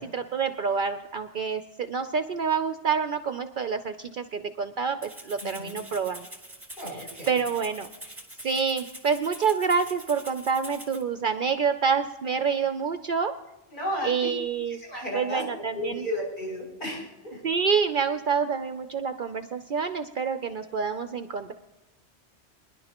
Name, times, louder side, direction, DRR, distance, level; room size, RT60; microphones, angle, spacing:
voice 1, 0.0-6.3 6.9-7.9 8.4-13.3 14.0-14.8 15.1-16.0 17.4-21.5, right 6 dB, 55° right, 9 dB, 0.6 m, -27 dB
Rattle (instrument), 5.0-11.0, right 1 dB, 10° right, 1.9 m, -44 dB
voice 2, 5.4-5.8 6.8-7.4 13.7-14.1 14.8-15.4 15.7-17.4, equal, 45° left, -5 dB, 6.6 m, -33 dB
24.5 x 11.0 x 2.9 m, 1.0 s
omnidirectional pair, 1.2 m